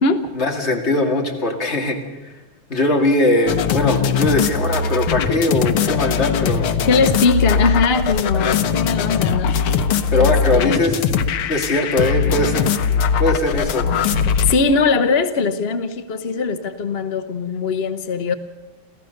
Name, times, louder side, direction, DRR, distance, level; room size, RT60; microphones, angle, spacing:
voice 1, 0.3-2.0 2.2-2.3 2.7-6.7 8.4-8.6 10.1-11.0 11.5-13.9, left 2 dB, 30° left, 2 dB, 2.6 m, -20 dB
sound 1, 3.5-14.5, left 6 dB, 80° left, 1.9 m, -20 dB
voice 2, 6.9-9.6 10.1-10.8 14.4-18.3, left 4 dB, 60° left, 10 dB, 0.6 m, -20 dB
27.5 x 15.0 x 6.6 m, 1.1 s
omnidirectional pair, 2.3 m